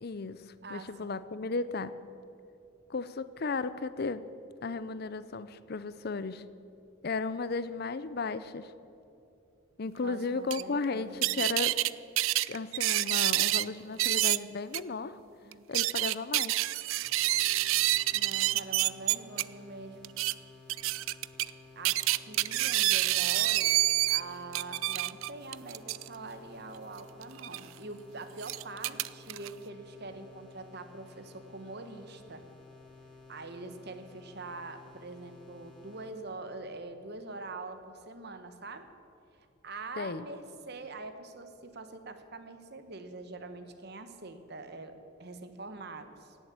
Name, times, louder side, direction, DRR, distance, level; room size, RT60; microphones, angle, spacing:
voice 1, 0.0-1.9 2.9-4.2 4.6-6.4 7.0-8.7 9.8-11.8 12.5-15.2 15.7-16.6 40.0-40.2, left 4 dB, 50° left, 14 dB, 0.5 m, -35 dB
voice 2, 0.6-1.1 10.0-11.4 15.4-15.6 18.1-20.2 21.7-23.8 24.1-32.4 33.3-38.9 39.4-44.9 45.2-46.4, right 3 dB, 50° right, 9 dB, 1.1 m, -44 dB
sound 1, 10.5-10.6 11.2-11.9 12.2-13.7 14.0-14.4 14.7-14.8 15.5-19.4 20.0-20.3 20.7-21.5 21.9-24.2 24.5-26.1 27.4-27.6 28.4-29.5, right 17 dB, 75° right, 0.3 m, -27 dB
sound 2, 17.0-36.1, left 4 dB, 5° left, 2.8 m, -54 dB
17.0 x 7.4 x 8.2 m, 2.7 s
head